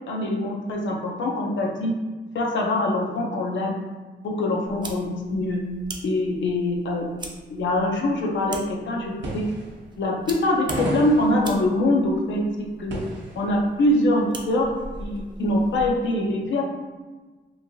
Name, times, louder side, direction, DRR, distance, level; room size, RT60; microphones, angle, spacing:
voice 1, 0.1-1.9 2.3-3.9 4.2-5.6 6.0-7.0 7.5-9.5 10.0-13.0 13.4-14.7 15.0-16.6, left 1 dB, 90° left, 0 dB, 0.6 m, -24 dB
sound 1, 4.7-16.1, right 2 dB, 25° right, 0.4 m, -42 dB
sound 2, 9.2-10.4 10.7-13.6 13.9-14.0 14.7-15.6, right 1 dB, 75° right, 0.6 m, -34 dB
3.0 x 2.6 x 2.6 m, 1.3 s
wide cardioid pair, 130°, 19 cm